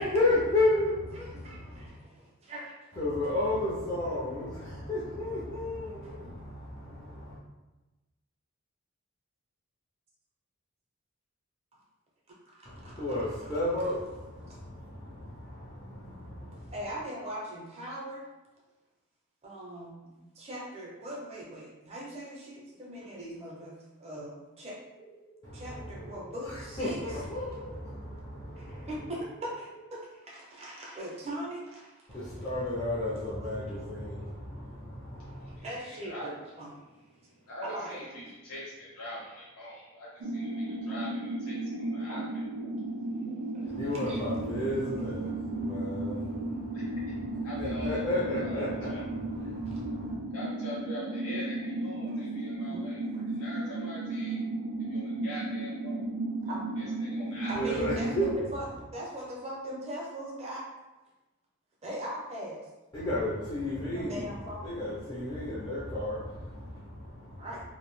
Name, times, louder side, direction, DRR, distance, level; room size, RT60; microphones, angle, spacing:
voice 1, 0.0-1.8 2.9-7.4 12.7-16.7 25.4-26.2 26.4-29.1 32.1-35.6 43.7-50.2 57.5-58.5 62.9-64.3 64.6-67.5, left 1 dB, 20° left, -9 dB, 0.5 m, -33 dB
voice 2, 1.2-1.6 2.5-2.7 6.0-6.1 12.5-13.0 14.5-14.6 16.7-18.3 19.4-24.8 25.5-27.0 28.6-32.2 33.7-33.8 35.2-37.0 37.6-38.3 42.1-42.2 42.6-43.1 43.5-44.2 49.7-49.8 52.1-52.2 52.6-52.8 53.1-53.2 56.5-56.7 57.5-58.6 58.9-60.6 61.8-62.7 63.7-64.8 67.4-67.6, right 1 dB, 30° right, -4 dB, 0.6 m, -40 dB
sound 1, 24.9-29.9, right 2 dB, 45° left, 0.7 m, -54 dB
voice 3, 35.4-36.3 37.2-42.2 43.3-43.5 43.7-43.9 46.5-46.9 47.2-48.0 48.4-48.6 48.9-49.0 49.5-53.0 53.3-54.4 54.8-56.1 56.8-57.8, equal, 85° left, -7 dB, 0.6 m, -44 dB
sound 2, 40.2-58.4, right 2 dB, 80° right, 0.3 m, -34 dB
2.6 x 2.0 x 3.0 m, 1.1 s
head